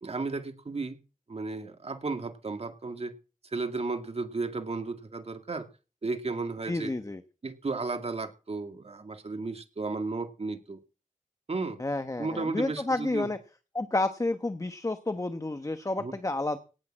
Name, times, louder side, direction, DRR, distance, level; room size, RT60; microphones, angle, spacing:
voice 1, 0.0-1.0 1.3-3.1 3.5-5.7 6.0-6.9 7.4-10.8 11.5-11.8 12.2-13.3 16.0-16.1, right 3 dB, 50° right, 6 dB, 2.2 m, -34 dB
voice 2, 6.6-7.2 11.8-13.4 13.7-16.6, left 2 dB, 25° left, 9 dB, 1.2 m, -30 dB
18.0 x 6.8 x 7.6 m, 0.35 s
wide cardioid pair, 90°, 13 cm